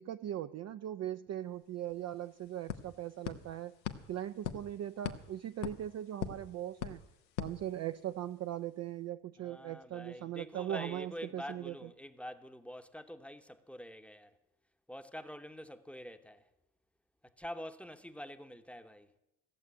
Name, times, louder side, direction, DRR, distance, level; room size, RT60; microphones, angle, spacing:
voice 1, 0.0-3.8 4.1-7.0 7.4-11.9, right 12 dB, 35° right, 0.5 m, -40 dB
sound 1, 1.6-1.7 1.9-8.3, left 9 dB, 85° left, 1.1 m, -44 dB
voice 2, 9.4-14.3 14.9-16.4 17.2-19.1, equal, 5° left, 0.9 m, -46 dB
16.0 x 7.5 x 10.0 m
hypercardioid pair, 70°, 49 cm